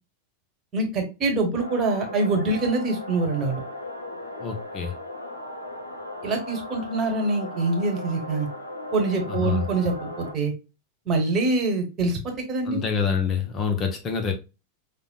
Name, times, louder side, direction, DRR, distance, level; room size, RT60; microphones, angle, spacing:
voice 1, 0.7-3.6 6.2-8.5 8.9-10.5 11.1-12.8, right 3 dB, 30° right, 1.1 m, -25 dB
sound 1, 1.5-10.3, left 1 dB, 80° left, 0.6 m, -37 dB
voice 2, 4.4-4.9 9.3-9.6 12.7-14.3, left 6 dB, 30° left, 0.6 m, -26 dB
5.0 x 2.0 x 2.3 m
figure-of-eight pair, 90°, 0 cm